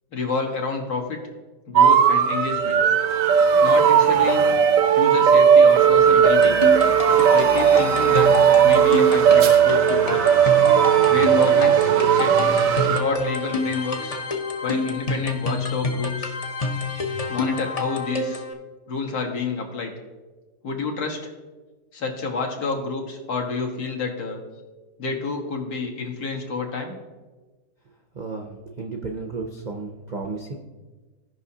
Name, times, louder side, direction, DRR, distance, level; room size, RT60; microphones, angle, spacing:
voice 1, 0.1-1.2 1.7-2.8 3.6-4.4 5.0-6.7 7.1-8.3 8.6-10.2 11.1-12.4 12.9-14.2 14.6-16.3 17.3-18.4 18.9-19.9 20.6-21.3 21.9-24.4 25.0-26.9, left 4 dB, 70° left, 1 dB, 1.7 m, -29 dB
sound 1, 1.8-13.0, right 8 dB, 65° right, 0.9 m, -16 dB
sound 2, 6.2-18.5, left 3 dB, 40° left, 0.5 m, -28 dB
voice 2, 28.1-30.5, right 4 dB, 50° right, 2 dB, 0.5 m, -33 dB
16.0 x 5.5 x 2.8 m, 1.3 s
omnidirectional pair, 1.7 m